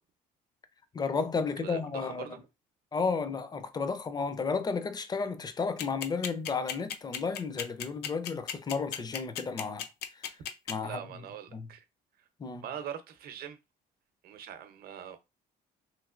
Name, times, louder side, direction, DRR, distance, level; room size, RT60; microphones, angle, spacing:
voice 1, 0.9-2.4 2.9-9.9 10.1-10.3 10.7-11.2 11.5-11.7 12.4-12.7, left 5 dB, 25° left, 0.5 m, -33 dB
voice 2, 1.6-2.4 10.8-11.8 12.6-13.6 14.2-15.2, right 9 dB, 65° right, 0.7 m, -42 dB
sound 1, 5.8-10.7, left 9 dB, 75° left, 0.5 m, -34 dB
3.2 x 2.8 x 2.4 m
cardioid pair, 110°, 17 cm